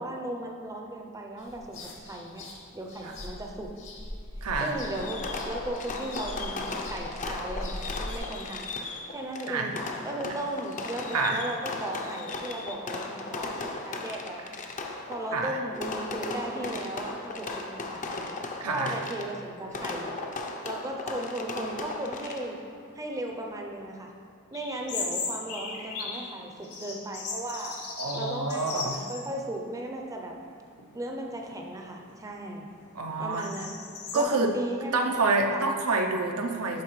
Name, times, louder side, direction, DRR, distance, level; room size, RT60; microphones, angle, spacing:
voice 1, 0.0-2.5 2.7-3.8 4.6-8.7 9.1-9.8 10.0-14.5 15.1-18.3 18.6-20.1 20.6-22.7 22.9-24.1 24.5-27.8 28.1-30.4 30.9-32.7 33.2-33.8 34.1-35.1 35.5-35.6, right 1 dB, 15° right, 2 dB, 0.5 m, -36 dB
sound 1, 1.4-8.2, left 1 dB, 60° left, 1.0 m, -41 dB
voice 2, 4.4-4.7 9.5-9.7 10.2-10.3 11.1-11.4 15.3-15.6 18.6-19.0 28.0-29.0 33.0-33.5 34.1-34.5 34.9-36.8, right 3 dB, 80° right, 4 dB, 0.6 m, -27 dB
Fireworks, 4.9-22.7, left 3 dB, 35° left, 0.5 m, -37 dB
sound 2, 24.5-26.3 26.6-29.3 29.7-29.8 30.5-30.9 31.4-34.2, left 4 dB, 90° left, 1.1 m, -37 dB
10.5 x 4.0 x 3.1 m, 2.2 s
head